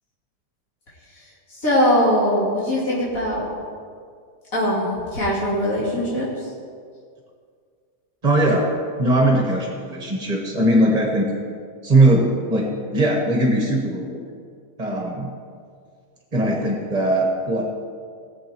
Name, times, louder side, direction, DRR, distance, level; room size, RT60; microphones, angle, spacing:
voice 1, 1.6-3.5 4.5-6.3, equal, 50° left, -8 dB, 3.5 m, -21 dB
voice 2, 8.2-8.7 9.0-11.3 11.8-14.2 14.8-15.3 16.3-17.6, right 1 dB, 25° right, 0 dB, 1.3 m, -19 dB
19.0 x 7.0 x 4.6 m, 2.1 s
omnidirectional pair, 1.8 m